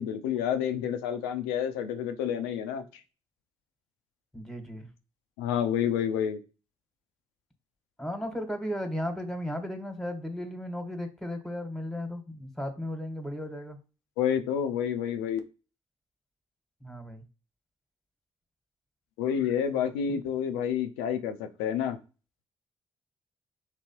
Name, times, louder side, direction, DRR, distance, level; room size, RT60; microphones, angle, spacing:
voice 1, 0.0-2.8 5.4-6.4 14.2-15.4 19.2-22.0, left 8 dB, 85° left, 8 dB, 0.4 m, -29 dB
voice 2, 4.3-4.9 8.0-13.8 16.8-17.2 20.1-20.2, left 1 dB, 5° left, 5 dB, 1.3 m, -35 dB
3.3 x 2.9 x 2.9 m, 0.33 s
hypercardioid pair, 40°, 13 cm